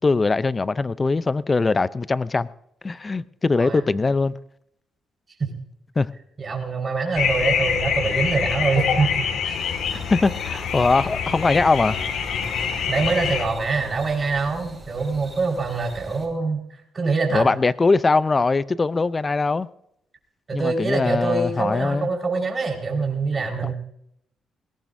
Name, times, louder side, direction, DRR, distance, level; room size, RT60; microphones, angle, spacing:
voice 1, 0.0-2.5 2.8-4.3 6.0-6.1 9.9-12.0 17.3-19.7 20.5-22.1 23.6-23.7, left 3 dB, 25° left, 0.5 m, -21 dB
voice 2, 6.4-9.6 12.9-17.5 20.5-23.7, right 4 dB, 35° right, 4.7 m, -24 dB
sound 1, 7.1-13.5, left 7 dB, 75° left, 1.9 m, -25 dB
sound 2, 9.5-16.3, right 1 dB, 20° right, 6.7 m, -42 dB
21.0 x 18.5 x 2.7 m
cardioid pair, 90°, 0 cm